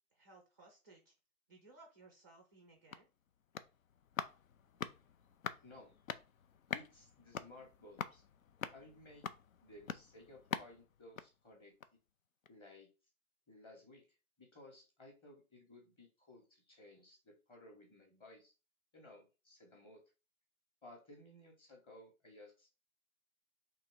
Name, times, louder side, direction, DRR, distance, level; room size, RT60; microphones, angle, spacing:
voice 1, 0.1-1.1 1.5-3.1, right 3 dB, 15° right, 2 dB, 0.4 m, -61 dB
sound 1, 2.5-12.1 12.4-12.5, left 8 dB, 65° left, 0.6 m, -46 dB
voice 2, 5.6-6.0 6.7-8.2 8.7-9.3 9.6-11.7 12.5-12.9 13.5-14.0 14.4-18.5 18.9-20.0 20.8-22.8, left 2 dB, 10° left, 1 dB, 0.9 m, -58 dB
3.8 x 3.0 x 4.5 m, 0.31 s
figure-of-eight pair, 130°, 44 cm